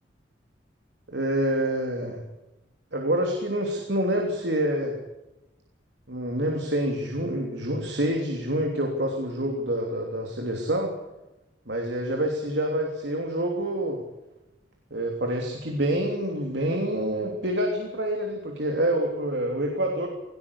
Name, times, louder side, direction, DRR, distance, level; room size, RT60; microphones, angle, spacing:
voice 1, 1.1-2.2 2.9-5.0 6.1-10.9 11.7-14.0 14.9-20.1, right 1 dB, 70° right, 2 dB, 3.2 m, -27 dB
19.0 x 18.5 x 8.4 m, 0.98 s
head